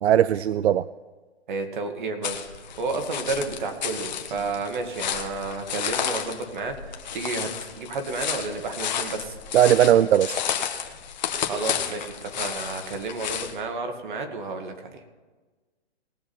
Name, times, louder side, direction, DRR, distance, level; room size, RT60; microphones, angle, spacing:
voice 1, 0.0-0.9 9.5-10.4, right 10 dB, 75° right, 16 dB, 0.5 m, -18 dB
voice 2, 1.5-2.4 2.8-9.4 11.4-15.1, right 3 dB, 45° right, 5 dB, 2.1 m, -31 dB
sound 1, 2.2-13.6, left 8 dB, 40° left, 1.3 m, -32 dB
20.0 x 7.5 x 4.4 m, 1.3 s
hypercardioid pair, 165°, 33 cm